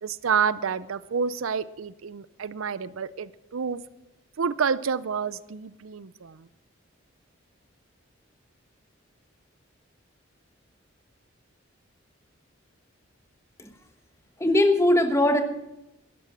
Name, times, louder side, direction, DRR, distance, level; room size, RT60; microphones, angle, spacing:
voice 1, 0.0-3.8 4.4-6.5, right 6 dB, 85° right, 18 dB, 0.5 m, -29 dB
voice 2, 14.4-15.4, left 1 dB, 15° left, 6 dB, 1.2 m, -20 dB
12.0 x 11.5 x 6.2 m, 0.93 s
head